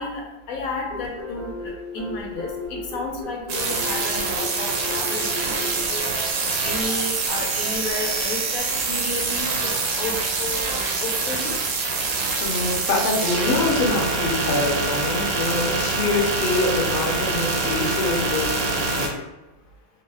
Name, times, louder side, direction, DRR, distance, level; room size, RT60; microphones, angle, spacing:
voice 1, 0.0-6.0 6.6-9.7 10.0-10.1 10.4-10.6 11.0-11.5, left 2 dB, 90° left, 0 dB, 1.1 m, -32 dB
sound 1, 0.9-10.7, left 1 dB, 50° right, 0.8 m, -37 dB
sound 2, 3.5-19.1, right 3 dB, 85° right, 1.0 m, -25 dB
voice 2, 12.4-19.2, left 2 dB, 50° left, -3 dB, 0.8 m, -25 dB
2.8 x 2.1 x 3.3 m, 1.0 s
omnidirectional pair, 1.4 m